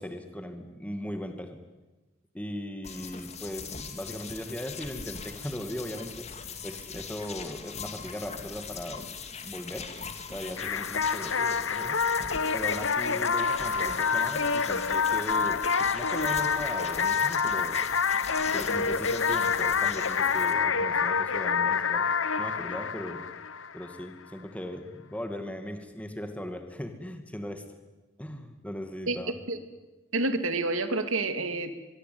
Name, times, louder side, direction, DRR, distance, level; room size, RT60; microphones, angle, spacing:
voice 1, 0.0-1.6 2.3-6.3 6.6-9.1 9.4-9.9 10.3-12.1 12.5-18.1 18.5-22.1 22.4-23.3 23.7-27.6 28.2-29.4, left 1 dB, 5° left, 6 dB, 2.2 m, -38 dB
sound 1, 2.8-20.5, left 5 dB, 35° left, 2.4 m, -41 dB
sound 2, 10.6-24.0, left 5 dB, 70° left, 0.9 m, -27 dB
voice 2, 30.1-31.7, right 2 dB, 85° right, 9 dB, 2.4 m, -28 dB
24.5 x 23.0 x 9.4 m, 1.1 s
head